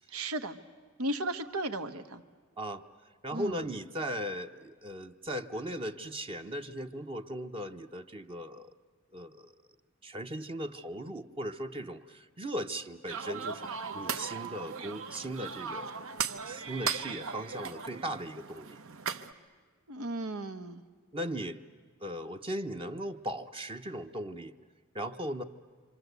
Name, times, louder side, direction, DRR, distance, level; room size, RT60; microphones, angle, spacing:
voice 1, 0.1-0.6 1.0-2.2 3.3-3.6 19.9-20.8, right 1 dB, 90° right, 9 dB, 1.3 m, -35 dB
voice 2, 3.2-8.7 9.1-9.5 10.0-16.0 16.5-18.8 21.1-21.6 22.0-24.5 24.9-25.4, equal, 25° right, 6 dB, 0.8 m, -38 dB
sound 1, 13.1-19.3, right 6 dB, 70° right, 1.0 m, -38 dB
27.0 x 26.0 x 8.1 m, 1.5 s
head